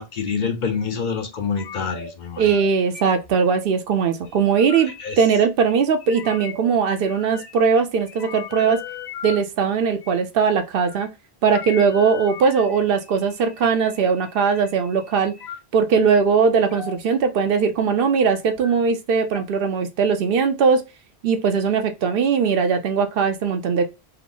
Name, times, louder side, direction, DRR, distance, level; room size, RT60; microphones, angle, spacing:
voice 1, 0.0-2.5 4.8-5.2, left 5 dB, 55° left, 0.6 m, -27 dB
sound 1, 1.6-2.1 2.4-2.7 2.9-3.3 4.2-5.1 6.0-6.7 7.0-7.7 8.0-9.4 10.0-10.2 10.7-11.0 11.5-15.6 16.0-16.2 16.7-17.0 17.4-18.1 18.4-18.7 19.3-19.4, left 7 dB, 90° left, 1.1 m, -38 dB
voice 2, 2.4-8.8 9.2-11.1 11.4-15.3 15.7-20.8 21.2-23.8, right 6 dB, 70° right, 0.7 m, -20 dB
3.3 x 2.0 x 3.7 m
omnidirectional pair, 1.0 m